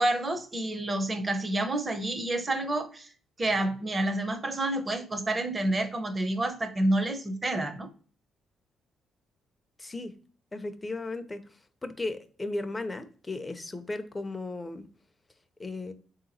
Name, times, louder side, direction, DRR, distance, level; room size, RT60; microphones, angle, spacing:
voice 1, 0.0-3.1 3.4-7.9, right 1 dB, 25° right, 8 dB, 0.7 m, -29 dB
voice 2, 9.8-10.1 10.5-11.4 11.8-14.9 15.6-15.9, left 2 dB, 20° left, 9 dB, 0.5 m, -35 dB
3.5 x 2.8 x 3.9 m, 0.40 s
cardioid pair, 90°, 0 cm